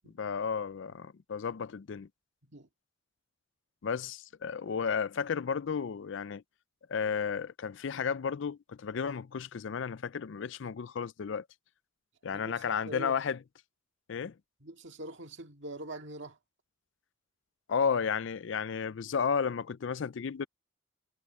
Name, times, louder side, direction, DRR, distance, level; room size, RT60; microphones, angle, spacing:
voice 1, 0.2-2.1 3.8-6.4 6.9-11.4 12.2-13.4 14.1-14.3 17.7-20.5, left 6 dB, 60° left, 0.4 m, -33 dB
voice 2, 12.3-13.2 14.6-16.4, right 1 dB, 55° right, 2.1 m, -43 dB
head